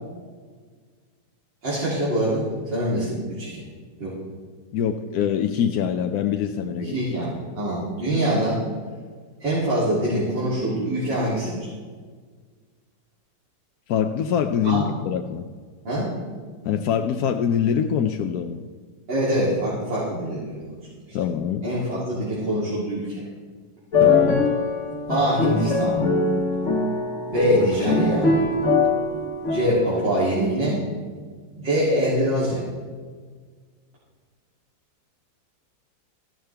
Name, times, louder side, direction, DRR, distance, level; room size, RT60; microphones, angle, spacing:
voice 1, 1.6-2.4 2.7-3.6 4.0-4.1 6.8-8.6 9.4-11.7 14.6-14.9 15.9-16.1 19.1-20.6 21.6-23.2 25.1-26.0 27.3-28.3 29.5-30.8 31.5-32.6, equal, 90° right, -9 dB, 3.7 m, -24 dB
voice 2, 4.7-7.0 13.9-15.5 16.6-18.6 21.1-21.7 24.0-24.5, left 8 dB, 70° left, 6 dB, 1.0 m, -24 dB
sound 1, 23.9-30.3, left 3 dB, 45° left, 1.5 m, -22 dB
15.0 x 12.5 x 3.4 m, 1.6 s
omnidirectional pair, 1.9 m